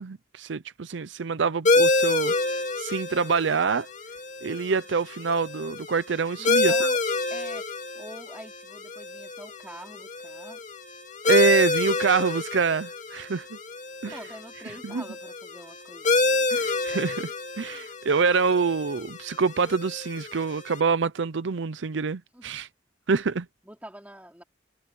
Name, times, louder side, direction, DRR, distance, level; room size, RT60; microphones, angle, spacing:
voice 1, 0.0-2.3 2.8-3.9 4.4-6.9 11.3-13.6 14.0-14.2 14.8-15.0 16.5-17.3 17.6-22.7 23.1-23.5, right 5 dB, 70° right, 0.6 m, -26 dB
sound 1, 1.6-20.8, left 3 dB, 40° left, 2.1 m, -28 dB
voice 2, 6.3-7.0 7.3-7.7 7.9-10.6 14.1-17.1 22.3-22.6 23.6-24.4, right 1 dB, 10° right, 3.9 m, -45 dB
head